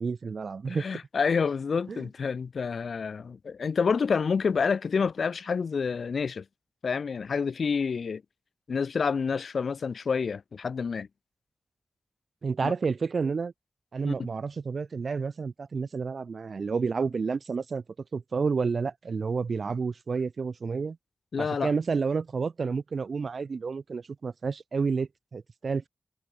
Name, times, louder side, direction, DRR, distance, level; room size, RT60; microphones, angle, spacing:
voice 1, 0.0-0.8 1.9-2.1 12.4-13.5 13.9-17.8 18.1-21.0 21.4-25.9, right 5 dB, 65° right, 3.2 m, -30 dB
voice 2, 0.7-6.4 6.8-8.2 8.7-11.1 12.6-12.7 14.0-14.1 21.3-21.7, left 5 dB, 80° left, 1.2 m, -28 dB
wide cardioid pair, 135°, 0 cm